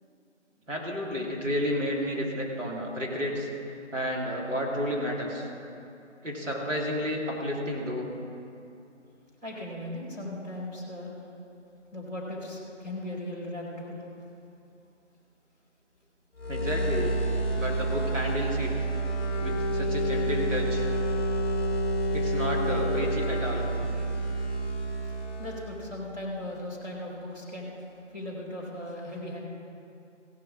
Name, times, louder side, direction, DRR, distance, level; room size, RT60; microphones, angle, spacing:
voice 1, 0.7-3.5 3.9-5.5 6.2-8.1 16.5-17.2 17.6-18.7 19.4-20.8 22.1-23.7, equal, 85° right, -2 dB, 3.2 m, -31 dB
voice 2, 9.4-11.1 11.9-14.0 25.4-27.7 28.1-29.4, left 1 dB, 15° right, -12 dB, 2.9 m, -37 dB
sound 1, 16.4-25.9, right 1 dB, 15° left, 3.0 m, -28 dB
16.0 x 6.2 x 7.4 m, 2.7 s
figure-of-eight pair, 165°, 37 cm